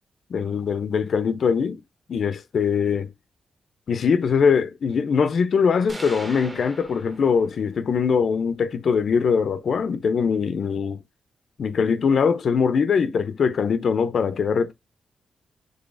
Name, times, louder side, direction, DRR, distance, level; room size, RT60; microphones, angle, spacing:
voice 1, 0.3-1.8 2.1-3.1 3.9-11.0 11.6-14.7, left 6 dB, 65° left, 0.4 m, -22 dB
sound 1, 5.9-7.9, right 1 dB, 20° right, 0.8 m, -39 dB
3.8 x 3.2 x 2.4 m
cardioid pair, 90°, 0 cm